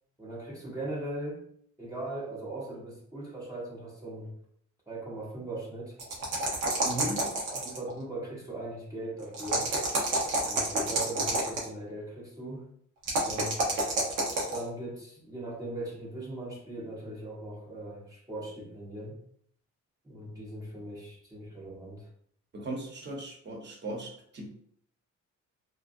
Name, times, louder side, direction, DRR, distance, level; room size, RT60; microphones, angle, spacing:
voice 1, 0.2-1.5 1.8-4.4 4.9-6.0 7.5-9.7 10.4-12.7 13.2-13.7 14.5-19.2 20.0-22.1, right 1 dB, 10° right, -5 dB, 0.7 m, -39 dB
sound 1, 6.0-7.9 9.3-11.7 13.0-14.6, right 2 dB, 85° right, 0.8 m, -28 dB
voice 2, 6.8-7.3 22.5-24.5, right 1 dB, 35° right, 0 dB, 0.9 m, -37 dB
2.6 x 2.1 x 2.4 m, 0.65 s
cardioid pair, 90°, 30 cm